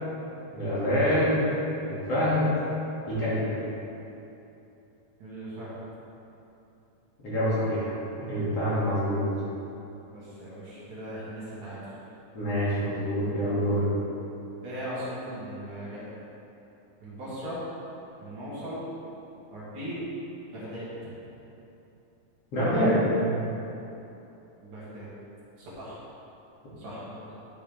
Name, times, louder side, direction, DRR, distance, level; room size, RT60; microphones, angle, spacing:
voice 1, 0.5-1.5 1.8-2.5 3.1-3.5 7.2-9.2 12.3-13.9 22.5-23.4, equal, 45° left, -11 dB, 3.3 m, -26 dB
voice 2, 5.2-5.7 10.1-11.9 14.6-16.0 17.0-17.6 18.2-18.9 19.5-20.1 20.5-20.9 24.6-25.1 25.6-26.0 26.8-27.2, equal, 55° right, -9 dB, 3.4 m, -38 dB
10.5 x 8.6 x 3.6 m, 2.9 s
omnidirectional pair, 4.1 m